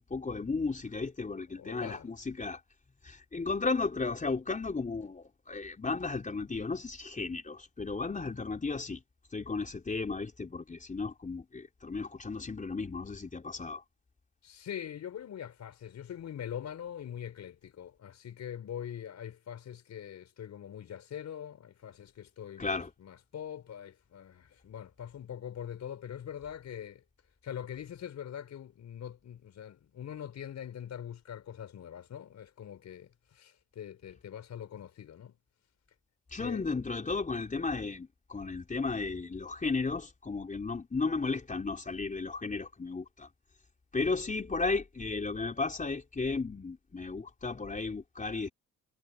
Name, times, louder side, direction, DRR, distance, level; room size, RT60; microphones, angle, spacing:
voice 1, 0.0-2.6 3.0-9.0 9.3-13.8 22.6-22.9 36.3-43.3 43.9-48.5, left 4 dB, 25° left, 4.3 m, -34 dB
voice 2, 1.5-2.1 14.4-27.0 27.4-35.4 36.4-36.6, left 9 dB, 65° left, 4.8 m, -43 dB
cardioid pair, 90°, 30 cm